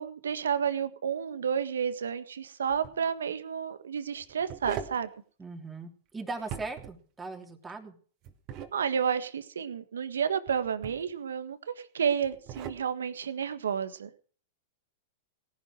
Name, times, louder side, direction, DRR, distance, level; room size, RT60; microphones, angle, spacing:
voice 1, 0.0-5.1 8.7-14.1, right 7 dB, 75° right, 11 dB, 1.6 m, -31 dB
sound 1, 2.7-3.0 4.2-5.0 6.4-7.0 8.2-8.7 10.5-11.1 12.2-12.8, right 9 dB, 40° right, 2.6 m, -40 dB
voice 2, 5.4-8.0, right 3 dB, 15° right, 3 dB, 3.2 m, -39 dB
18.5 x 11.5 x 4.9 m, 0.42 s
hypercardioid pair, 105°, 0 cm